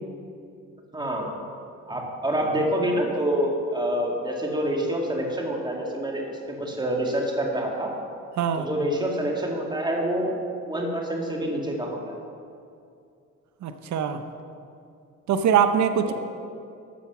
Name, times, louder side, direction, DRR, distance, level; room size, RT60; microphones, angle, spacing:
voice 1, 0.9-1.4 1.9-6.3 6.6-7.9 8.6-12.2 16.1-16.2, right 1 dB, 15° right, 0 dB, 2.2 m, -27 dB
voice 2, 8.4-8.7 13.6-14.2 15.3-16.1, right 8 dB, 70° right, 8 dB, 0.8 m, -22 dB
12.5 x 7.0 x 6.0 m, 2.4 s
cardioid pair, 90°, 30 cm